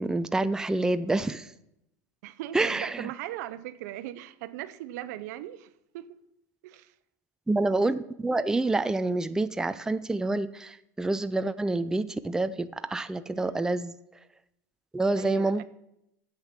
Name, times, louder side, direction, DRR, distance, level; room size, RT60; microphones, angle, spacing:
voice 1, 0.0-1.5 2.5-3.1 7.5-14.0 14.9-15.6, right 2 dB, 5° right, 11 dB, 0.5 m, -27 dB
voice 2, 2.2-6.1 6.6-6.9 13.3-13.7 15.2-15.6, right 14 dB, 75° right, 13 dB, 0.7 m, -39 dB
11.5 x 8.2 x 6.0 m, 0.82 s
supercardioid pair, 110°, 9 cm